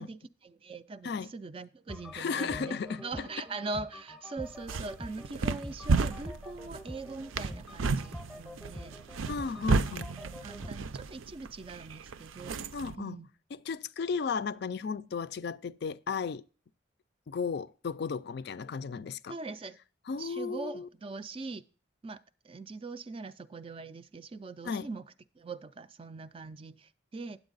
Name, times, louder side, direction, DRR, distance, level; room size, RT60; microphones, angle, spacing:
voice 1, 0.0-9.0 10.2-12.6 13.0-13.3 19.3-19.8 20.2-21.6 22.0-25.1 25.4-27.4, right 3 dB, 25° right, 0.3 m, -42 dB
sound 1, 1.9-10.7, equal, ahead, 0.7 m, -46 dB
voice 2, 2.1-3.0 9.3-10.1 12.7-13.2 13.5-16.4 17.3-19.3 20.1-20.9 24.6-24.9, left 5 dB, 55° left, 0.4 m, -34 dB
sound 2, 4.4-13.0, right 4 dB, 85° right, 0.5 m, -33 dB
9.5 x 8.0 x 3.9 m
head